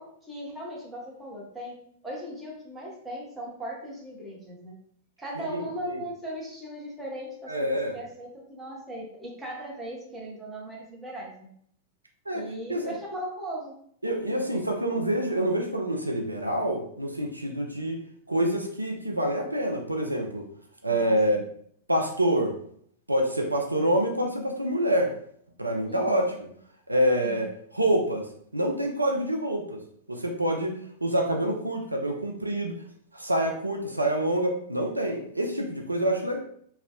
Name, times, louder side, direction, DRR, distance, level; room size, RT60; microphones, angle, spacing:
voice 1, 0.0-1.8 2.0-4.7 5.2-11.5 12.3-13.7 20.9-21.4 25.9-26.3 27.2-27.5, right 1 dB, 10° right, -4 dB, 0.8 m, -38 dB
voice 2, 5.5-6.0 7.5-7.9 12.3-12.4 12.7-12.9 14.0-18.0 18.3-20.5 20.8-21.5 21.9-22.5 23.1-25.1 25.6-26.5 26.9-28.3 28.5-29.8 30.1-32.7 33.1-36.4, right 1 dB, 85° right, 2 dB, 0.3 m, -26 dB
2.7 x 2.0 x 2.4 m, 0.65 s
figure-of-eight pair, 100°, 0 cm